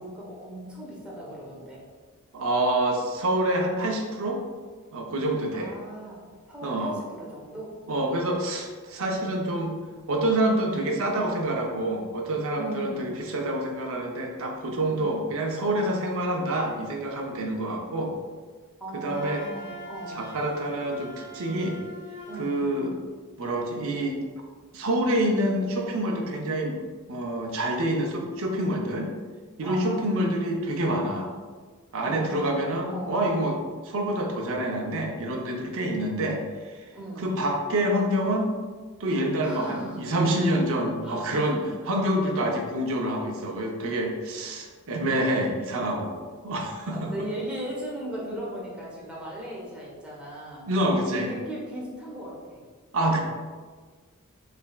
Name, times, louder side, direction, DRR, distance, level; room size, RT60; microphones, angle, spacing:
voice 1, 0.0-1.8 5.5-7.8 9.0-9.3 12.5-13.0 14.9-15.1 18.8-20.2 22.3-22.6 29.6-30.1 32.0-33.1 36.9-37.3 39.4-40.0 41.0-41.6 46.9-50.6 51.2-52.6, right 1 dB, 5° right, -5 dB, 0.9 m, -38 dB
voice 2, 2.3-4.4 4.9-5.8 6.6-6.9 7.9-9.8 10.1-18.1 19.0-19.5 20.1-21.8 22.4-23.0 23.4-24.2 24.7-26.8 27.1-29.1 29.6-31.3 31.9-36.9 37.2-38.5 39.0-41.6 41.9-47.1 50.7-51.3 52.9-53.2, right 1 dB, 65° right, 1 dB, 0.6 m, -27 dB
Wind instrument woodwind instrument, 19.1-22.8, equal, 60° left, 0.9 m, -42 dB
4.1 x 3.3 x 2.3 m, 1.4 s
head